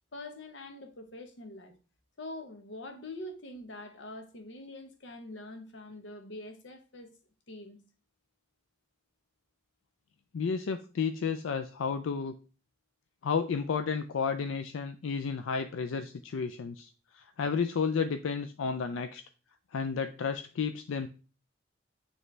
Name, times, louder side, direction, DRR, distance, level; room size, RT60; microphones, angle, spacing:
voice 1, 0.1-1.8 2.2-7.1 7.5-7.8, left 1 dB, 65° left, 1.0 m, -44 dB
voice 2, 10.3-12.4 13.2-19.2 19.7-21.1, left 5 dB, 85° left, 0.4 m, -32 dB
9.0 x 3.2 x 3.2 m
head